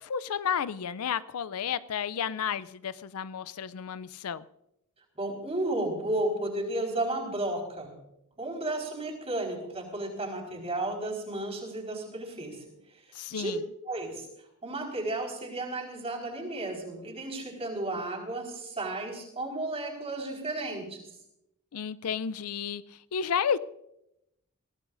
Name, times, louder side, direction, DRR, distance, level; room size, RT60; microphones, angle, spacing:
voice 1, 0.0-4.4 13.1-13.6 21.7-23.6, left 7 dB, 80° left, 16 dB, 0.5 m, -32 dB
voice 2, 5.1-7.9 8.4-12.6 13.3-13.6 13.9-14.2 14.6-21.1, right 2 dB, 25° right, -1 dB, 4.6 m, -33 dB
23.0 x 16.5 x 2.6 m, 0.83 s
head